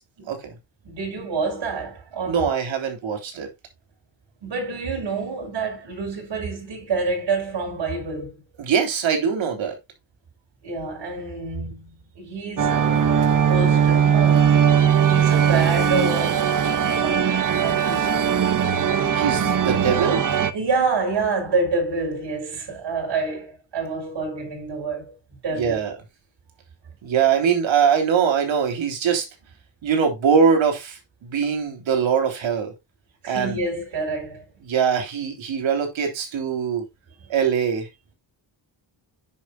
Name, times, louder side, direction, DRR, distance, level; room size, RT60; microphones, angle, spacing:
voice 1, 0.8-2.6 4.4-8.3 10.6-14.5 15.1-16.5 16.8-18.3 20.5-25.1 25.4-25.8 33.2-34.4, right 4 dB, 65° right, 5.5 m, -27 dB
voice 2, 2.3-3.5 8.6-9.8 19.1-20.2 25.5-25.9 27.0-29.2 29.8-32.7 33.3-33.6 34.6-36.8 37.3-37.9, right 7 dB, 90° right, 3.4 m, -22 dB
sound 1, 12.6-20.5, right 8 dB, 45° right, 1.0 m, -19 dB
10.5 x 6.6 x 2.3 m
wide cardioid pair, 140°, 45 cm